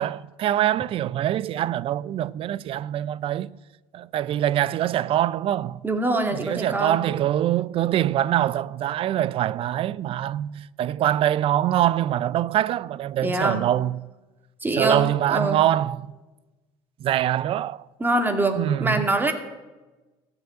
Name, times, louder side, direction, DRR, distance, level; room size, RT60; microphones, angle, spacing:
voice 1, 0.0-3.5 3.9-5.8 6.3-14.1 14.8-16.1 17.0-17.8 18.6-19.0, right 12 dB, 55° right, 0.5 m, -24 dB
voice 2, 5.8-7.0 13.2-13.6 14.6-15.6 18.0-19.3, right 2 dB, 15° right, 2.2 m, -24 dB
15.0 x 7.1 x 9.4 m
supercardioid pair, 90°, 11 cm